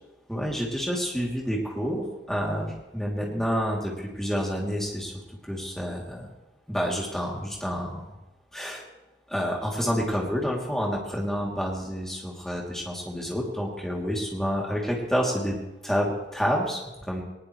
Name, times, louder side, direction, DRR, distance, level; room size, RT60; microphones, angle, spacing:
voice 1, 0.3-5.1 5.4-6.3 6.7-8.0 8.5-8.8 9.3-15.6 15.8-17.2, equal, 5° left, -3 dB, 3.0 m, -29 dB
21.0 x 19.5 x 3.3 m, 0.99 s
head